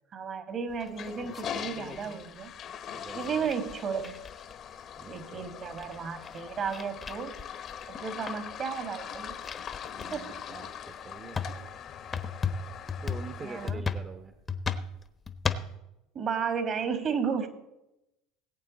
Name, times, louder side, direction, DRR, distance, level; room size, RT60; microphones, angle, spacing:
voice 1, 0.1-2.5 3.1-4.2 5.1-7.4 7.9-9.4 10.1-10.4 13.4-13.8 16.1-17.5, right 6 dB, 45° right, 8 dB, 1.8 m, -33 dB
Toilet flush, 0.7-13.7, left 8 dB, 50° left, 1.1 m, -42 dB
sound 1, 0.7-2.2 3.1-4.7 5.2-5.3 5.5-8.0 8.3-8.5 9.0-10.2 10.8-10.9 11.3-15.8, left 5 dB, 30° left, 0.9 m, -35 dB
voice 2, 2.9-3.5 5.0-5.5 9.9-11.4 13.0-14.3, right 4 dB, 25° right, 6 dB, 1.1 m, -45 dB
19.0 x 8.4 x 4.1 m, 0.93 s
hypercardioid pair, 80°, 0 cm